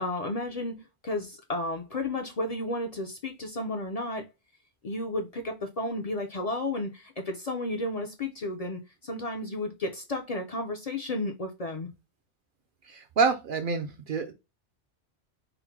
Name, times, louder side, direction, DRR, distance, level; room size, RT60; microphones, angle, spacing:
voice 1, 0.0-4.3 4.8-11.9, left 2 dB, 45° left, 0.5 m, -33 dB
voice 2, 12.9-14.3, right 5 dB, 60° right, 0.6 m, -27 dB
3.8 x 2.1 x 4.4 m
omnidirectional pair, 1.2 m